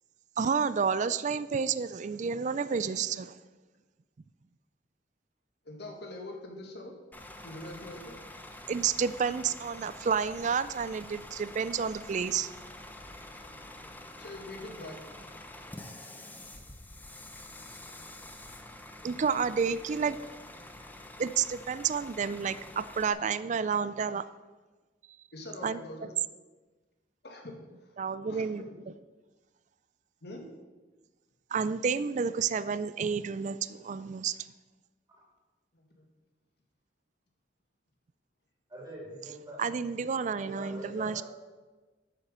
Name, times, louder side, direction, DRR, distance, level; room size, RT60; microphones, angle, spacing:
voice 1, 0.4-3.4 8.7-12.5 19.0-20.2 21.2-24.3 25.6-25.8 28.0-28.7 31.5-34.4 39.6-41.2, right 6 dB, 40° right, 15 dB, 0.4 m, -30 dB
voice 2, 5.7-6.9 7.4-8.1 14.2-15.0 25.3-26.1 27.2-28.8 30.2-30.4 35.7-36.0, left 1 dB, 65° left, 2 dB, 1.9 m, -44 dB
Bus / Idling, 7.1-23.1, left 1 dB, 10° left, 0.8 m, -47 dB
voice 3, 38.7-39.6 40.2-41.2, equal, 20° right, -3 dB, 3.1 m, -44 dB
9.1 x 7.3 x 6.7 m, 1.3 s
head